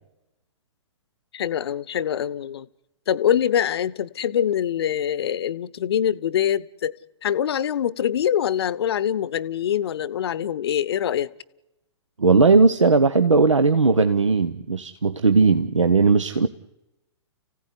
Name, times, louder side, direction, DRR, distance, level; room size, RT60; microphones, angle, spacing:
voice 1, 1.3-2.7 3.1-6.9 7.2-11.3, left 9 dB, 55° left, 20 dB, 0.9 m, -24 dB
voice 2, 12.2-16.5, right 4 dB, 80° right, 10 dB, 1.1 m, -18 dB
30.0 x 16.0 x 9.9 m, 0.99 s
figure-of-eight pair, 115°, 16 cm